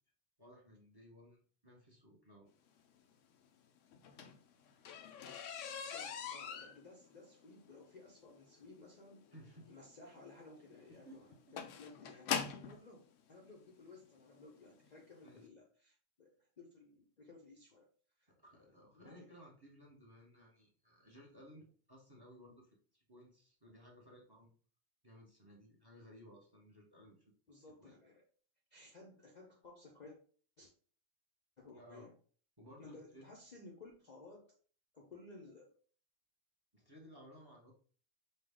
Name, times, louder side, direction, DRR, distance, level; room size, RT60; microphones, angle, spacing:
voice 1, 0.4-2.5 9.3-9.7 10.9-11.2 15.2-15.5 18.3-24.5 25.0-27.3 27.8-27.9 31.8-32.1 32.6-33.3 36.7-37.7, equal, 20° right, -1 dB, 1.0 m, -59 dB
sound 1, 3.9-12.8 13.7-13.8 14.3-14.6 14.8-14.9 15.3-15.4, left 7 dB, 70° left, 0.9 m, -43 dB
voice 2, 5.9-9.2 9.6-17.9 18.2-18.3 18.9-19.5 27.5-28.2 28.7-30.2 30.6-30.7 31.6-32.1 32.8-34.6 34.9-35.7, left 3 dB, 40° left, -2 dB, 0.7 m, -57 dB
5.4 x 2.4 x 3.5 m, 0.44 s
omnidirectional pair, 1.4 m